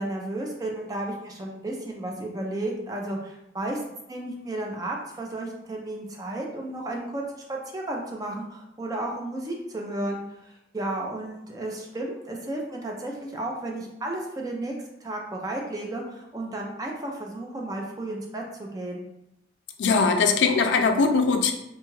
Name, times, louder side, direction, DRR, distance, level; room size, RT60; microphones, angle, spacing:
voice 1, 0.0-14.7 15.0-19.0, right 1 dB, 20° right, 0 dB, 0.4 m, -33 dB
voice 2, 19.8-21.5, left 4 dB, 85° left, 6 dB, 0.4 m, -21 dB
2.7 x 2.3 x 3.0 m, 0.85 s
head